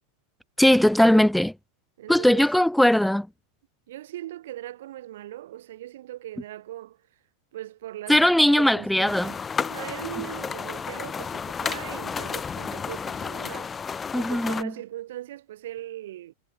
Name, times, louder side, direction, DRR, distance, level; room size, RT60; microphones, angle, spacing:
voice 1, 0.6-1.5 2.1-3.3 8.1-9.3 14.1-14.7, left 1 dB, ahead, 0.5 m, -19 dB
voice 2, 2.0-2.4 3.9-7.0 7.5-8.2 8.6-13.7 14.1-16.3, right 14 dB, 55° right, 2.3 m, -39 dB
sound 1, 9.1-14.6, left 6 dB, 20° left, 2.6 m, -32 dB
figure-of-eight pair, 90°, 0 cm